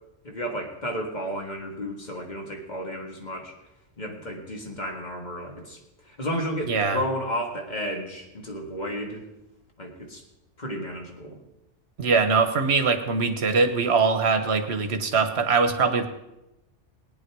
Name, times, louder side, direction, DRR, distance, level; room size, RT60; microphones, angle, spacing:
voice 1, 0.2-3.5 4.0-5.8 6.1-9.3 9.8-10.2 10.6-11.4, equal, 40° left, 2 dB, 1.8 m, -32 dB
voice 2, 6.7-7.0 12.0-16.1, right 4 dB, 65° right, 8 dB, 1.4 m, -22 dB
18.0 x 9.9 x 4.7 m, 0.94 s
omnidirectional pair, 1.2 m